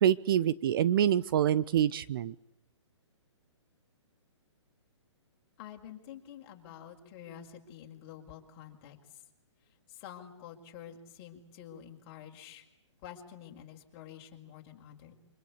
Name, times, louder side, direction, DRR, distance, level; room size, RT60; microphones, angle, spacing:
voice 1, 0.0-2.3, right 10 dB, 45° right, 17 dB, 1.0 m, -26 dB
voice 2, 5.6-9.2 9.9-12.7 13.0-15.2, left 9 dB, 30° left, 2 dB, 5.6 m, -48 dB
27.0 x 25.5 x 8.6 m, 0.84 s
hypercardioid pair, 150°, 16 cm